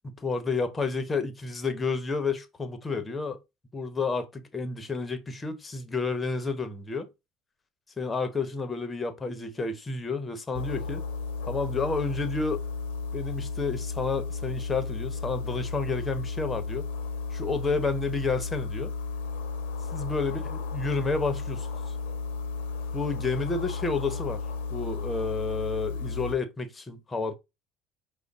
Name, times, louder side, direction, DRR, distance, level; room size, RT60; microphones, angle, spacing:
voice 1, 0.0-3.4 3.7-7.1 8.0-11.0 11.5-12.7 13.1-16.9 17.3-18.9 19.9-21.7 22.9-24.4 24.7-27.3, left 4 dB, 20° left, 0.9 m, -30 dB
sound 1, 10.5-26.4, left 4 dB, 85° left, 0.7 m, -34 dB
5.1 x 2.2 x 3.5 m
supercardioid pair, 80°, 0 cm